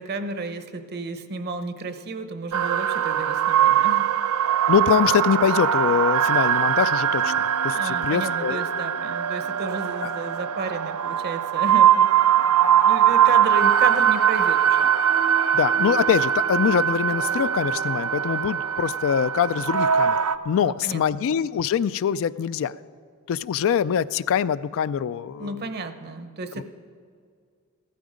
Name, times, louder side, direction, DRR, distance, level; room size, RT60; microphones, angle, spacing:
voice 1, 0.0-4.1 7.7-14.9 20.6-21.2 25.4-26.6, right 3 dB, 45° right, 9 dB, 0.8 m, -33 dB
sound 1, 2.5-20.4, right 9 dB, 70° right, 0.5 m, -21 dB
voice 2, 4.7-7.3 7.6-8.7 10.0-10.1 15.5-20.2 20.5-22.7 23.3-25.6 26.6-26.7, left 8 dB, 60° left, 16 dB, 0.3 m, -23 dB
16.0 x 13.0 x 5.0 m, 2.2 s
head